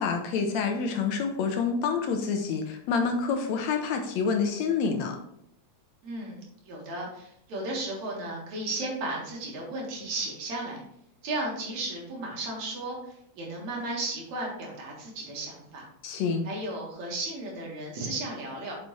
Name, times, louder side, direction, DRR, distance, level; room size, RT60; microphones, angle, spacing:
voice 1, 0.0-5.2 16.0-16.5, left 5 dB, 75° left, 4 dB, 1.8 m, -27 dB
voice 2, 6.0-10.8 11.2-15.9 16.4-18.7, right 2 dB, 70° right, -2 dB, 3.0 m, -34 dB
7.2 x 5.6 x 3.2 m, 0.74 s
omnidirectional pair, 3.4 m